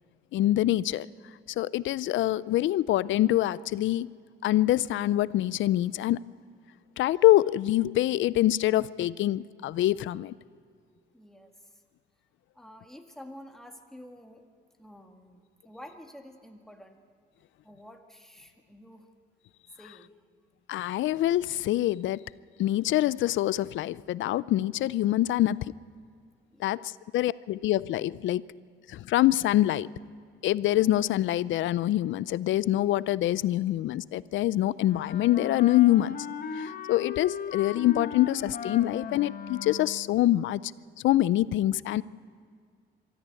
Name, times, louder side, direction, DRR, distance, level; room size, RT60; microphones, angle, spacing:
voice 1, 0.3-1.1 1.6-4.1 4.4-6.2 7.0-10.3 20.7-22.2 22.6-25.6 26.6-28.4 28.9-29.9 30.4-36.2 36.5-40.7 41.0-42.0, left 14 dB, 75° left, 20 dB, 0.5 m, -25 dB
voice 2, 11.1-11.8 12.5-14.4 14.8-17.0 17.6-19.1 19.8-20.2 26.5-26.8, left 1 dB, ahead, 3 dB, 1.9 m, -49 dB
Wind instrument woodwind instrument, 34.8-40.2, left 6 dB, 45° left, 1.1 m, -37 dB
23.5 x 14.0 x 8.3 m, 2.1 s
cardioid pair, 90°, 20 cm